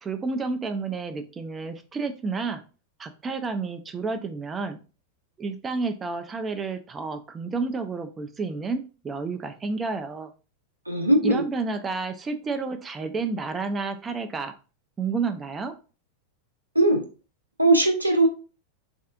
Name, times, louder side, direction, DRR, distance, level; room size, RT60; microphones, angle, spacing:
voice 1, 0.0-2.6 3.0-4.8 5.4-10.3 11.2-14.5 15.0-15.7, right 4 dB, 20° right, 7 dB, 0.3 m, -30 dB
voice 2, 10.9-11.4 16.7-17.0 17.6-18.3, right 1 dB, 85° right, 4 dB, 0.5 m, -19 dB
3.4 x 2.4 x 2.4 m, 0.34 s
figure-of-eight pair, 90°, 0 cm